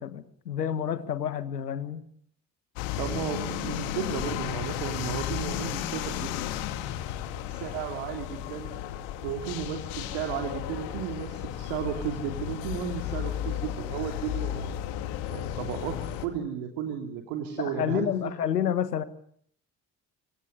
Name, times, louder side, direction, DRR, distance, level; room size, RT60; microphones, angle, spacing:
voice 1, 0.0-2.0 17.6-19.0, left 9 dB, 90° left, 13 dB, 1.7 m, -29 dB
sound 1, 2.8-16.3, left 11 dB, 70° left, 2.6 m, -34 dB
voice 2, 3.0-6.3 7.5-8.7 9.2-14.7 15.3-18.3, right 8 dB, 75° right, 4 dB, 3.5 m, -34 dB
27.0 x 26.5 x 6.8 m, 0.65 s
hypercardioid pair, 45°, 47 cm